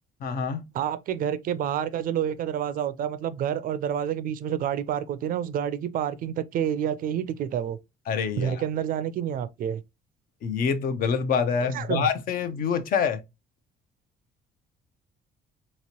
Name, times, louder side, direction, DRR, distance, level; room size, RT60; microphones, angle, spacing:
voice 1, 0.2-0.6 8.1-8.6 10.4-13.2, left 6 dB, 60° left, 0.6 m, -26 dB
voice 2, 0.7-7.8 8.4-9.8 11.7-12.1, right 9 dB, 55° right, 0.4 m, -28 dB
2.9 x 2.9 x 2.8 m
cardioid pair, 110°, 17 cm